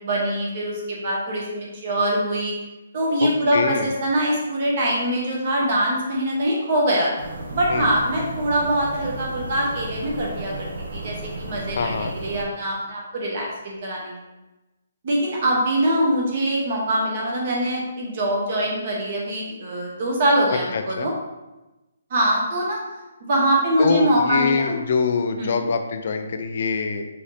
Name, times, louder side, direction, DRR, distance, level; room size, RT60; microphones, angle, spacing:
voice 1, 0.0-2.5 2.9-14.1 15.0-21.1 22.1-22.8 23.2-24.8 25.4-25.5, right 1 dB, 40° right, -2 dB, 0.9 m, -23 dB
voice 2, 3.2-3.9 7.7-7.9 11.7-12.1 20.5-21.1 23.8-27.1, left 5 dB, 45° left, 7 dB, 0.4 m, -24 dB
sound 1, 7.2-12.4, right 2 dB, 60° right, 0.7 m, -34 dB
5.6 x 2.7 x 3.2 m, 1.0 s
hypercardioid pair, 170°, 0 cm